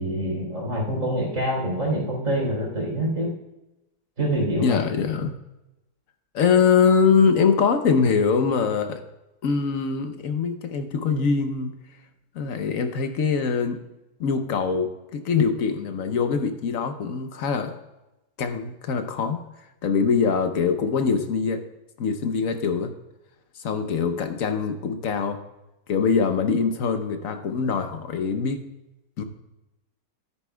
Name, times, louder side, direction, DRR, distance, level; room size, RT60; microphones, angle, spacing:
voice 1, 0.0-3.3 4.2-4.8, right 1 dB, 50° right, -5 dB, 3.5 m, -25 dB
voice 2, 4.6-5.3 6.3-9.0 9.4-11.7 12.3-13.8 14.2-17.7 18.4-19.4 19.8-21.6 22.0-22.9 23.6-25.4 25.9-28.6 29.2-29.3, left 5 dB, 60° left, 7 dB, 1.1 m, -23 dB
13.0 x 9.9 x 2.3 m, 0.96 s
omnidirectional pair, 1.8 m